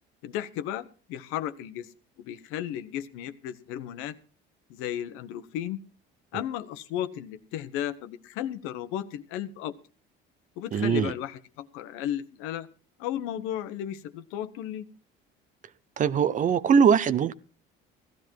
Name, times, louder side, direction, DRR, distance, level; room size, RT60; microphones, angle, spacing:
voice 1, 0.2-1.9 2.2-4.2 4.7-5.8 6.3-9.8 10.6-12.7 13.0-14.8, left 11 dB, 85° left, 1.1 m, -34 dB
voice 2, 10.7-11.1 16.0-17.3, right 7 dB, 40° right, 0.7 m, -21 dB
16.0 x 12.0 x 4.6 m
cardioid pair, 110°, 20 cm